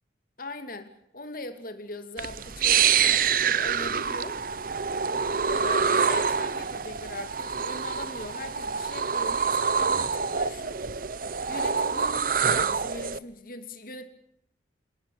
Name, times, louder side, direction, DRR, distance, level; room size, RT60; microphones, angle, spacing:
voice 1, 0.4-4.4 5.3-10.8 11.5-14.1, left 2 dB, 50° left, 9 dB, 2.6 m, -40 dB
sound 1, 2.2-13.2, right 6 dB, 50° right, 0.9 m, -26 dB
27.5 x 18.0 x 8.6 m, 0.73 s
head